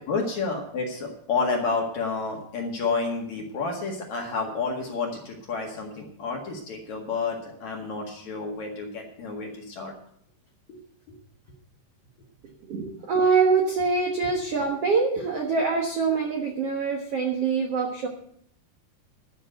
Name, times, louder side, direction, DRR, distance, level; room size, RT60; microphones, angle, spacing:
voice 1, 0.1-9.9 10.7-10.8 15.2-15.3, left 4 dB, 50° left, 1 dB, 2.6 m, -30 dB
voice 2, 12.7-18.1, right 5 dB, 70° right, 1 dB, 1.4 m, -24 dB
12.5 x 6.1 x 9.0 m, 0.68 s
omnidirectional pair, 4.9 m